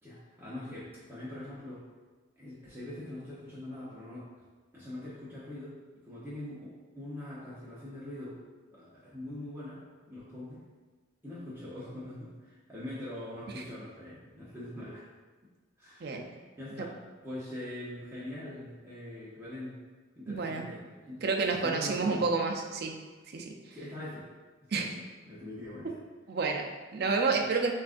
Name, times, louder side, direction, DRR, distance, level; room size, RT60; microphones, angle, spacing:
voice 1, 0.0-1.8 2.4-4.3 4.7-5.7 6.0-8.4 8.7-9.8 10.1-10.6 11.2-15.0 15.8-16.2 16.6-16.9 17.2-19.8 20.2-21.2 21.5-22.3 23.7-24.3 24.6-26.0, left 1 dB, 10° right, -9 dB, 0.8 m, -43 dB
voice 2, 20.3-20.7 21.2-22.9 23.3-23.5 24.7-24.9 26.3-27.7, right 4 dB, 50° right, 2 dB, 0.5 m, -29 dB
7.2 x 2.4 x 2.5 m, 1.3 s
head